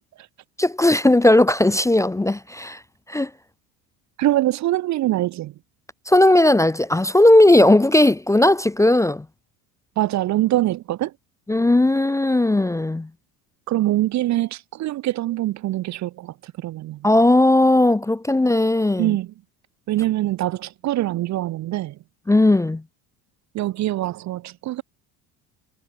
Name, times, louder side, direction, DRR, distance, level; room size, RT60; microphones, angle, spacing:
voice 1, 0.6-2.8 3.1-3.3 6.1-9.3 11.5-13.1 17.0-19.2 22.3-22.8, left 1 dB, 5° left, 0.6 m, -17 dB
voice 2, 4.2-5.5 10.0-11.1 13.7-17.1 19.0-19.3 19.9-22.0 23.5-24.8, right 15 dB, 45° right, 0.6 m, -24 dB
supercardioid pair, 110°, 41 cm